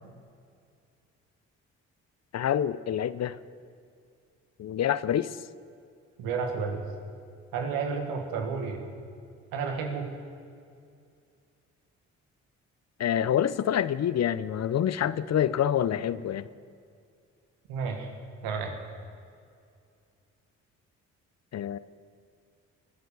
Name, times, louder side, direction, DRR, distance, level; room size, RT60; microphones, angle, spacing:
voice 1, 2.3-3.4 4.6-5.4 13.0-16.5 21.5-21.8, left 10 dB, 50° left, 16 dB, 0.6 m, -27 dB
voice 2, 6.2-6.8 7.5-8.8 9.5-10.1 17.7-18.1 18.4-18.7, right 5 dB, 80° right, 4 dB, 1.9 m, -31 dB
22.5 x 7.6 x 6.9 m, 2.4 s
hypercardioid pair, 45°, 35 cm